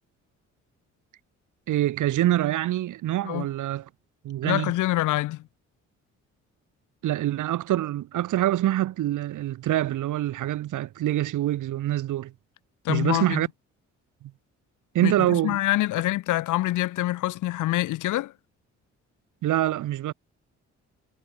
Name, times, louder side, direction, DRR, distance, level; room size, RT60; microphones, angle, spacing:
voice 1, 1.7-3.8 4.2-4.7 7.0-12.3 12.9-13.5 14.9-15.6 19.4-20.1, right 13 dB, 80° right, 5.3 m, -25 dB
voice 2, 4.4-5.4 12.8-13.4 15.0-18.3, left 16 dB, 90° left, 2.0 m, -26 dB
cardioid pair, 90°, 30 cm